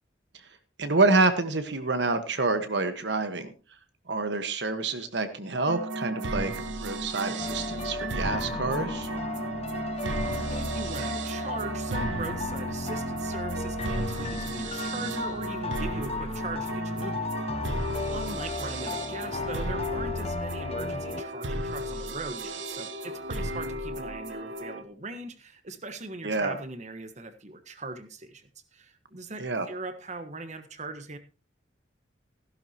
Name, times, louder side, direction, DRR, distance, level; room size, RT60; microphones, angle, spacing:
voice 1, 0.8-3.5 4.1-6.5 6.8-9.1 26.2-26.6 29.4-29.7, right 3 dB, 65° right, 9 dB, 1.4 m, -27 dB
sound 1, 5.7-24.8, right 1 dB, 90° right, 1.3 m, -34 dB
Eerie Piano Intro & Buildup, 7.4-21.2, left 3 dB, 35° left, 0.7 m, -35 dB
voice 2, 10.5-28.5 28.7-31.2, right 3 dB, 40° right, 9 dB, 1.3 m, -40 dB
15.5 x 11.5 x 2.9 m, 0.32 s
head